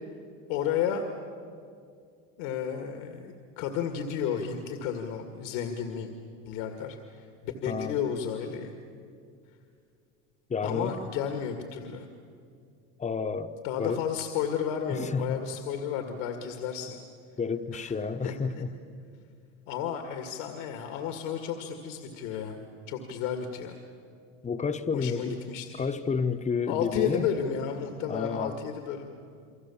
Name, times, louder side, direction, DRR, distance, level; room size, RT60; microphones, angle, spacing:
voice 1, 0.5-1.1 2.4-6.1 6.5-8.7 10.6-12.1 13.6-17.0 17.7-17.9 18.2-18.3 19.7-22.6 22.9-23.8 24.9-25.7 26.7-29.1, left 8 dB, 75° left, 2.2 m, -32 dB
voice 2, 7.7-8.0 10.5-11.0 13.0-13.5 13.8-14.0 14.9-15.4 17.4-18.7 24.4-25.4 25.8-27.3 28.0-28.6, left 5 dB, 20° left, 1.1 m, -30 dB
29.0 x 23.5 x 7.3 m
supercardioid pair, 105°, 38 cm